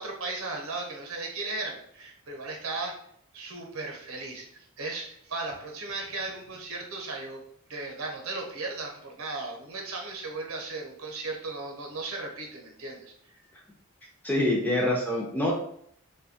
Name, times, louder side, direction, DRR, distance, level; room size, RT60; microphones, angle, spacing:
voice 1, 0.0-2.9 3.3-7.4 7.7-13.4, right 3 dB, 75° right, 1 dB, 0.7 m, -36 dB
voice 2, 14.2-15.5, left 1 dB, 10° left, -2 dB, 0.4 m, -25 dB
2.7 x 2.2 x 2.7 m, 0.68 s
head